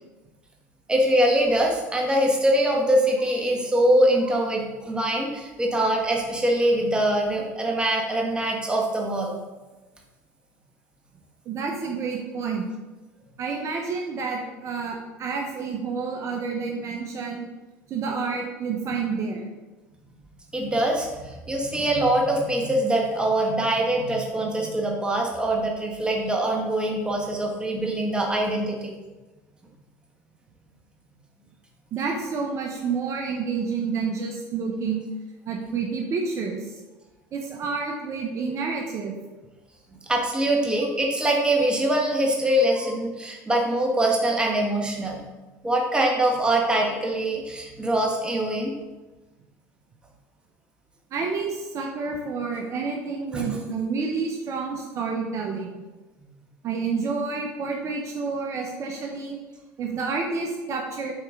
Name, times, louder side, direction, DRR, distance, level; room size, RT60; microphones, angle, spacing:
voice 1, 0.9-9.3 20.5-28.9 40.1-45.2 45.6-48.7 53.3-53.5, right 1 dB, 10° right, 0 dB, 1.5 m, -23 dB
voice 2, 11.5-12.6 13.4-17.5 17.9-19.5 31.9-35.0 35.5-36.6 37.3-39.2 42.8-42.9 44.1-44.2 51.1-55.7 56.6-59.4 59.8-61.1, right 5 dB, 45° right, 1 dB, 1.1 m, -29 dB
7.7 x 4.5 x 3.9 m, 1.2 s
supercardioid pair, 95°, 7 cm